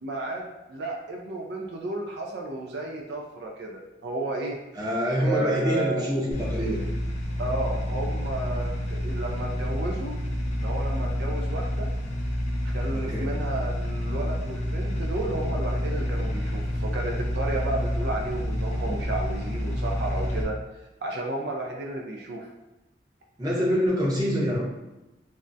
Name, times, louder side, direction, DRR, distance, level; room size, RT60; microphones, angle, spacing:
voice 1, 0.0-4.6 5.3-6.0 7.4-10.2 10.6-11.9 12.7-20.6 21.0-22.5, right 2 dB, 70° right, -1 dB, 0.4 m, -32 dB
voice 2, 4.8-6.8 12.9-13.3 23.4-24.6, equal, 20° right, -5 dB, 0.7 m, -25 dB
sound 1, 6.3-20.4, equal, 40° left, 0.5 m, -29 dB
3.4 x 2.1 x 2.6 m, 0.99 s
head